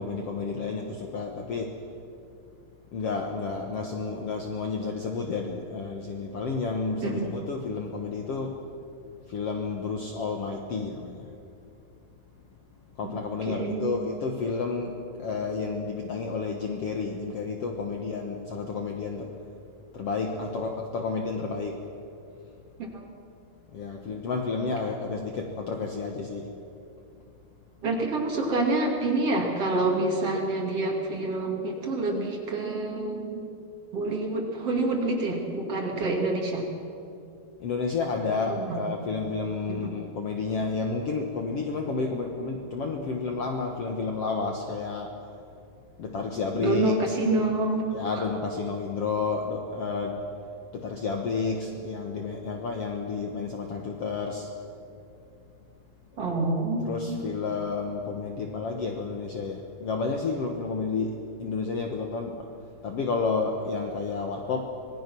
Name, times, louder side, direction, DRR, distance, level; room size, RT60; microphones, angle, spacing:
voice 1, 0.0-1.7 2.9-8.6 9.3-11.3 13.0-19.3 19.9-21.8 23.7-26.5 37.6-45.1 46.0-47.1 47.9-50.1 50.7-54.5 56.8-62.5 62.8-64.7, left 4 dB, 70° left, 2 dB, 1.4 m, -31 dB
voice 2, 13.5-14.0 22.8-23.0 27.8-33.4 33.9-36.6 38.6-38.8 39.8-39.9 46.5-47.9 48.1-48.2 56.2-57.3, right 2 dB, 40° right, 0 dB, 3.0 m, -27 dB
26.0 x 20.5 x 6.2 m, 2.5 s
omnidirectional pair, 4.9 m